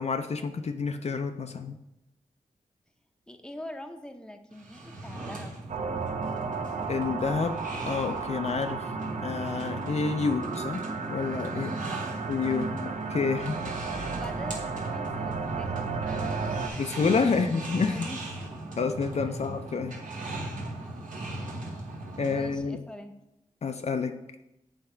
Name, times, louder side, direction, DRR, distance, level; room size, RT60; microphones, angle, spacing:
voice 1, 0.0-1.8 6.9-7.6 7.9-8.9 9.2-10.8 11.1-11.7 12.3-14.1 16.8-18.1 18.8-20.0 22.2-22.8 23.6-24.1, left 4 dB, 55° left, 7 dB, 0.4 m, -29 dB
voice 2, 3.3-5.6 11.8-12.3 13.8-16.6 17.2-18.2 19.3-19.4 20.8-21.0 22.2-23.1, left 1 dB, 5° left, 6 dB, 0.7 m, -44 dB
sound 1, 4.5-22.6, right 2 dB, 85° right, 1.2 m, -38 dB
sound 2, 5.7-16.7, right 5 dB, 65° right, 0.6 m, -34 dB
7.7 x 3.4 x 4.4 m, 0.89 s
cardioid pair, 60°, 13 cm